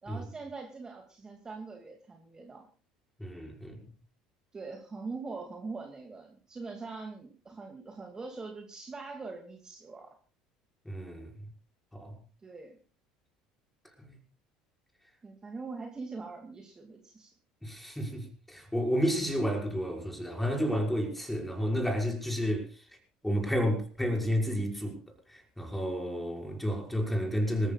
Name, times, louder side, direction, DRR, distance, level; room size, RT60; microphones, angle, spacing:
voice 1, 0.0-2.7 4.5-10.1 12.4-12.8 15.2-17.3, right 4 dB, 25° right, 3 dB, 2.3 m, -42 dB
voice 2, 3.2-3.9 10.9-11.3 11.9-12.1 14.1-14.2 17.6-22.7 23.2-25.0 25.3-27.7, equal, 5° left, 1 dB, 5.7 m, -31 dB
26.5 x 14.5 x 2.4 m, 0.39 s
figure-of-eight pair, 65°, 3 cm